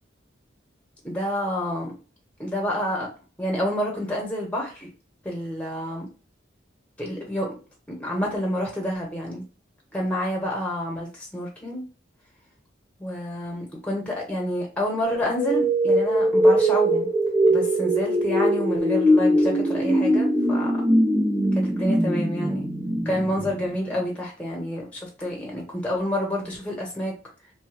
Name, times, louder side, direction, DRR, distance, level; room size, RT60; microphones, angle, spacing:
voice 1, 1.0-1.9 2.4-3.1 3.4-4.9 5.2-6.1 7.0-7.5 7.9-9.4 9.9-11.8 13.0-17.1 17.5-20.7 21.6-22.7 23.0-27.1, equal, 5° left, -2 dB, 1.0 m, -28 dB
sound 1, 15.0-24.0, right 1 dB, 10° right, 0.6 m, -21 dB
3.2 x 2.2 x 3.3 m, 0.34 s
head